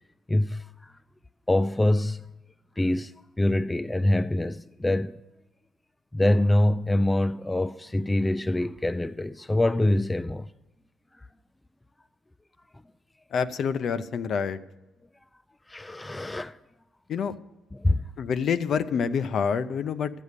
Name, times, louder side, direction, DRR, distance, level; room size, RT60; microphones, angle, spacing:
voice 1, 0.3-0.9 1.5-2.2 2.8-5.2 6.1-10.5 15.7-16.6 17.7-18.1, left 1 dB, 10° left, 0.3 m, -25 dB
voice 2, 13.3-14.6 17.1-17.3 18.2-20.1, left 6 dB, 60° left, 0.6 m, -27 dB
12.5 x 8.4 x 6.6 m
cardioid pair, 125°, 0 cm